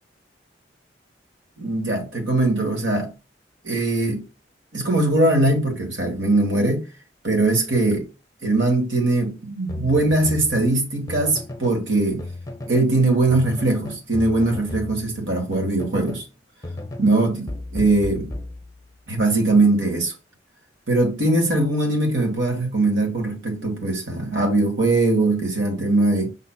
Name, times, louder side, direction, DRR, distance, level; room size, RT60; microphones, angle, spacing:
voice 1, 1.6-3.1 3.6-4.2 4.7-6.8 7.2-8.1 8.4-12.2 12.7-16.2 17.0-18.3 19.1-20.1 20.9-26.3, right 2 dB, 90° right, 1.5 m, -21 dB
sound 1, 9.7-11.8 12.2-13.0 13.3-16.3 16.6-19.1, left 1 dB, 20° left, 0.6 m, -35 dB
5.6 x 3.6 x 2.3 m
head